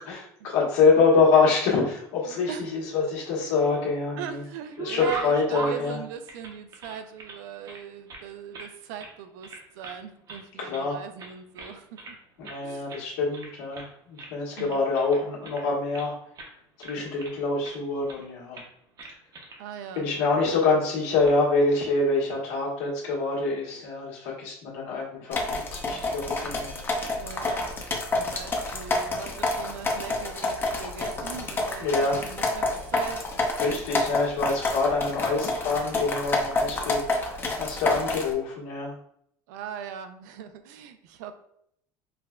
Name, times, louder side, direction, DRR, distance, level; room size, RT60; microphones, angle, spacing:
voice 1, 0.0-4.4 4.8-6.0 10.6-10.9 12.4-16.1 16.8-18.6 19.9-25.4 25.7-26.9 31.8-32.2 33.6-38.9, left 4 dB, 80° left, -4 dB, 1.3 m, -25 dB
voice 2, 2.3-2.6 4.2-12.9 14.6-14.8 19.6-20.1 27.2-33.3 39.5-41.3, right 8 dB, 85° right, 9 dB, 0.4 m, -40 dB
sound 1, 3.2-4.1 4.4-7.4 7.6-8.7 9.0-9.2 9.4-10.0 10.3-10.9 11.2-12.2 12.4-12.6 12.9-13.1 13.3-13.9 14.2-16.1 16.4-16.5 16.8-17.7 18.1-18.3 18.5-18.7 19.0-19.6 19.9-20.0 21.0-21.3, right 3 dB, 45° right, 0.8 m, -40 dB
sound 2, 25.3-38.3, left 2 dB, 25° left, 0.7 m, -28 dB
4.6 x 2.2 x 2.4 m, 0.71 s
supercardioid pair, 110°, 9 cm